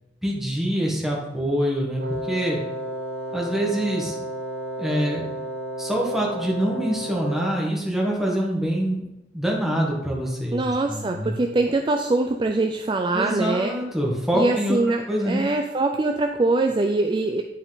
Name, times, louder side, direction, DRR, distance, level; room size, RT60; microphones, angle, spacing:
voice 1, 0.2-2.6 3.3-4.1 4.8-5.2 5.8-9.0 9.3-11.4 13.1-14.8 15.1-15.4, equal, ahead, -3 dB, 1.5 m, -25 dB
Wind instrument woodwind instrument, 2.0-7.7, right 1 dB, 65° right, 0.9 m, -32 dB
voice 2, 10.5-13.7 14.3-17.4, right 2 dB, 25° right, 4 dB, 0.3 m, -23 dB
10.0 x 4.3 x 3.9 m, 0.96 s
head